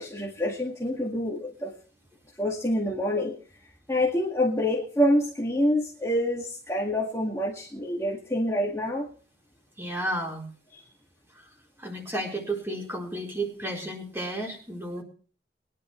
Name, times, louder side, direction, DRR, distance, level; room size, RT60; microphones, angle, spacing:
voice 1, 0.0-1.7 2.4-3.4 3.9-9.1 10.7-10.8, left 1 dB, 15° left, -3 dB, 2.0 m, -27 dB
voice 2, 9.8-10.5 11.3-11.5 11.8-15.0, right 1 dB, 15° right, -1 dB, 4.3 m, -32 dB
22.5 x 11.0 x 3.2 m, 0.42 s
head